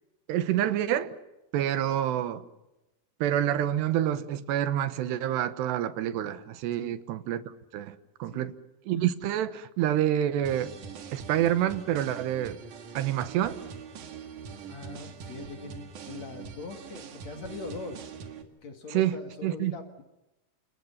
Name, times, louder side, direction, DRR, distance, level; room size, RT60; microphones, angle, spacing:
voice 1, 0.3-1.2 1.5-2.5 3.2-7.4 7.7-8.5 8.9-10.7 11.1-12.6 12.9-13.6 18.9-19.2 19.4-19.8, right 11 dB, 90° right, 3.3 m, -27 dB
sound 1, 10.5-18.4, right 6 dB, 55° right, 3.0 m, -43 dB
voice 2, 14.7-18.1 18.6-20.0, left 4 dB, 50° left, 2.6 m, -42 dB
29.0 x 28.0 x 5.7 m
omnidirectional pair, 4.8 m